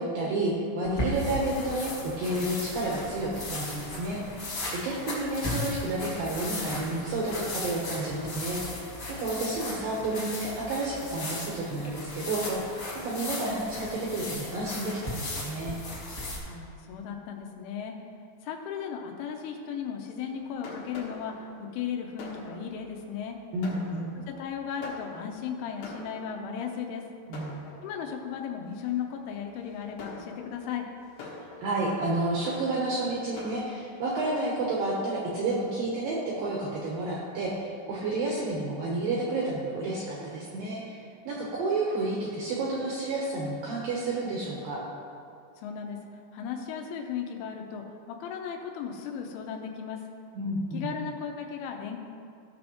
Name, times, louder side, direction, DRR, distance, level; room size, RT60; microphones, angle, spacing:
voice 1, 0.0-4.4 4.7-15.8 23.5-24.1 27.3-27.6 31.6-44.8 50.3-50.9, right 2 dB, 75° right, -4 dB, 2.1 m, -30 dB
sound 1, 0.8-16.4, left 2 dB, 50° left, 1.4 m, -36 dB
voice 2, 16.4-17.9 18.4-23.4 24.3-27.0 27.8-30.9 45.6-46.0 46.3-50.0 50.7-52.0, left 7 dB, 85° left, 2 dB, 3.3 m, -36 dB
Fireworks, 20.2-26.7 27.3-28.2 28.8-29.1 29.6-33.8, left 3 dB, 70° left, 3.2 m, -45 dB
16.5 x 6.3 x 3.0 m, 2.5 s
omnidirectional pair, 5.4 m